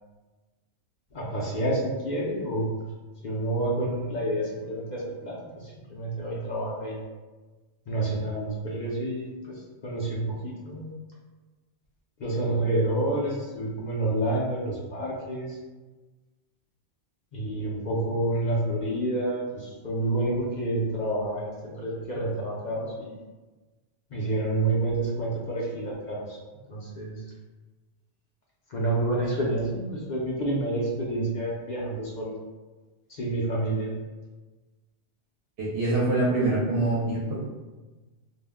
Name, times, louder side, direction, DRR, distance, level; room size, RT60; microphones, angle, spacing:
voice 1, 1.1-2.7 3.2-7.0 7.9-10.9 12.2-15.6 17.3-23.2 24.1-26.4 26.7-27.2 28.7-32.3 33.1-33.9, right 1 dB, 55° left, -4 dB, 0.6 m, -29 dB
voice 2, 35.6-37.4, right 2 dB, 75° right, -6 dB, 0.9 m, -25 dB
2.4 x 2.1 x 3.4 m, 1.2 s
omnidirectional pair, 1.2 m